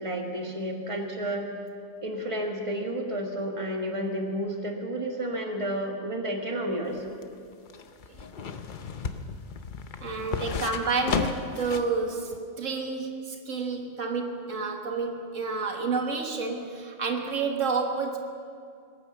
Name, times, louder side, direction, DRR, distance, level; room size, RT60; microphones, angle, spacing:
voice 1, 0.0-1.5 2.0-7.2, right 1 dB, 25° right, 2 dB, 1.6 m, -31 dB
sound 1, 6.9-12.0 12.3-12.4, left 5 dB, 45° left, 0.8 m, -33 dB
voice 2, 10.0-18.2, right 4 dB, 80° right, 3 dB, 1.8 m, -30 dB
20.5 x 9.2 x 7.1 m, 2.3 s
omnidirectional pair, 1.3 m